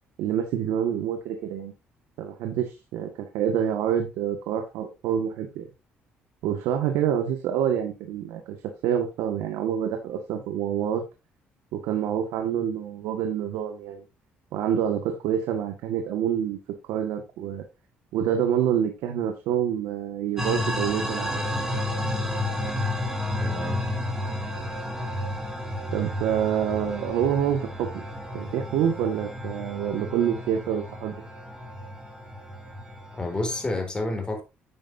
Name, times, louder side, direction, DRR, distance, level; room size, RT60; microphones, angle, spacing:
voice 1, 0.2-1.7 2.2-5.7 6.4-8.6 8.8-11.0 11.7-14.0 14.5-16.6 16.9-17.6 18.1-21.4 25.9-28.0 28.3-31.1, right 9 dB, 85° right, 1.7 m, -27 dB
sound 1, 20.4-33.6, left 1 dB, 10° right, 3.3 m, -32 dB
voice 2, 23.4-23.8 33.1-34.4, left 2 dB, 20° left, 3.9 m, -29 dB
9.8 x 9.3 x 2.7 m
cardioid pair, 85°, 4 cm